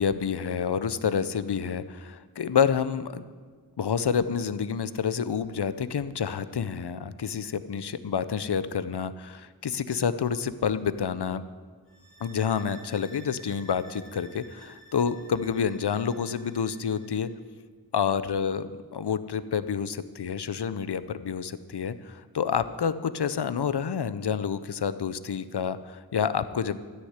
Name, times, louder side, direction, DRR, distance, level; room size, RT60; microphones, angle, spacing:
voice 1, 0.0-3.2 3.8-11.4 12.2-17.3 17.9-26.8, left 7 dB, 75° left, 14 dB, 0.7 m, -28 dB
sound 1, 11.9-17.3, right 1 dB, 30° left, 3.4 m, -52 dB
13.5 x 6.5 x 9.5 m, 1.6 s
wide cardioid pair, 55°, 40 cm